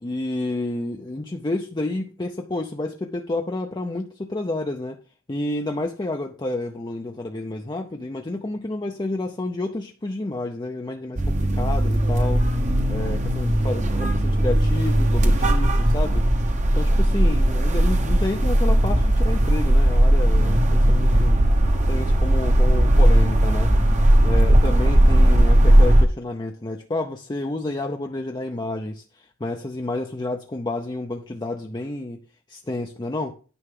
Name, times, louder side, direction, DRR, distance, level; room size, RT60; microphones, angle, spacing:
voice 1, 0.0-5.0 5.3-12.4 12.9-16.3 16.7-21.4 21.9-23.7 24.2-29.0 29.4-32.2 32.5-33.3, left 2 dB, 20° left, 0.5 m, -30 dB
sound 1, 11.2-26.0, right 1 dB, 35° right, 0.9 m, -18 dB
9.8 x 5.9 x 3.7 m
head